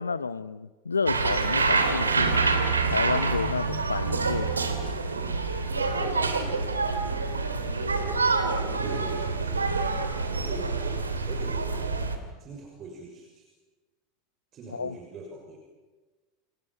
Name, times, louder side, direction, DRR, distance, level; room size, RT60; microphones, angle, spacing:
voice 1, 0.0-2.6 2.8-4.6 14.7-15.0, left 5 dB, 80° left, 0.9 m, -31 dB
sound 1, 1.1-12.2, right 4 dB, 85° right, 2.9 m, -26 dB
voice 2, 5.7-6.8 8.0-9.7 10.4-12.1 12.4-13.5 14.5-15.6, right 3 dB, 35° right, 6.1 m, -41 dB
30.0 x 30.0 x 5.8 m
figure-of-eight pair, 80°, 0 cm